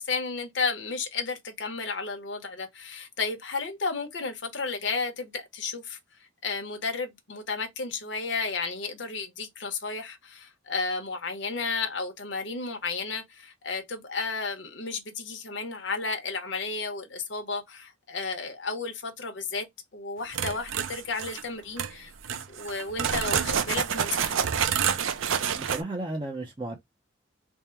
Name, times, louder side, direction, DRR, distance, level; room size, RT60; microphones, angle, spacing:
voice 1, 0.0-6.0 6.4-19.7 19.9-24.4, left 4 dB, 65° left, 0.9 m, -33 dB
sound 1, 20.3-21.4 21.8-21.9 22.2-25.8, right 8 dB, 80° right, 0.5 m, -28 dB
voice 2, 25.6-26.8, right 2 dB, 25° right, 0.6 m, -34 dB
3.6 x 2.1 x 4.3 m
head